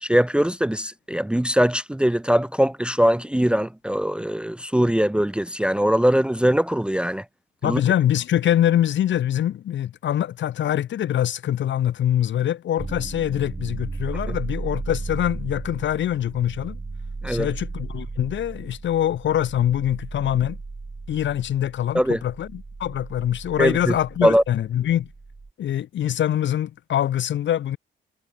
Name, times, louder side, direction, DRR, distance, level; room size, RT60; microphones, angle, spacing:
voice 1, 0.0-7.2 7.6-7.8 14.3-14.4 17.2-17.5 21.9-22.2 23.6-23.9 24.2-24.4, equal, 5° right, 0.7 m, -21 dB
voice 2, 7.6-16.8 17.3-20.6 21.1-25.1 25.6-27.8, left 11 dB, 70° left, 2.3 m, -24 dB
sound 1, 12.8-25.5, right 3 dB, 20° right, 2.3 m, -35 dB
cardioid pair, 90°, 20 cm